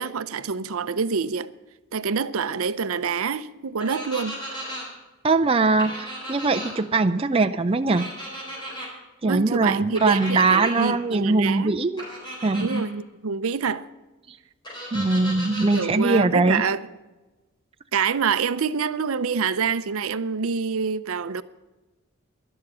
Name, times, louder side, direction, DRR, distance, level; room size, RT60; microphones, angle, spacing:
voice 1, 0.0-1.5 1.9-4.4 9.2-11.8 12.5-13.9 15.7-16.8 17.9-21.4, right 5 dB, 70° right, 0.6 m, -26 dB
sound 1, 3.8-4.8 5.8-6.7 7.9-8.9 9.9-10.9 12.0-12.8 14.6-15.8, equal, 20° left, 4.6 m, -35 dB
voice 2, 5.2-8.1 9.2-12.0 12.4-12.8 14.9-16.6, right 3 dB, 25° right, 0.5 m, -21 dB
12.5 x 11.0 x 7.4 m
head